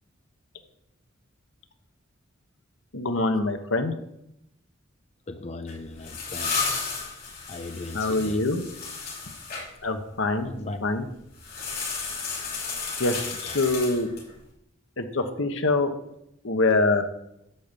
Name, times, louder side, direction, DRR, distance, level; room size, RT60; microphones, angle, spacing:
voice 1, 2.9-3.9 7.9-8.6 9.8-11.1 13.0-14.1 15.0-15.9 16.4-17.0, left 2 dB, 75° left, 7 dB, 1.2 m, -25 dB
voice 2, 5.3-6.7 7.5-8.4 10.4-10.9 13.4-13.7, left 2 dB, 35° left, 7 dB, 0.6 m, -38 dB
sound 1, 5.7-9.6 11.4-14.3, left 4 dB, 50° left, 5.5 m, -33 dB
11.5 x 5.3 x 8.3 m, 0.82 s
head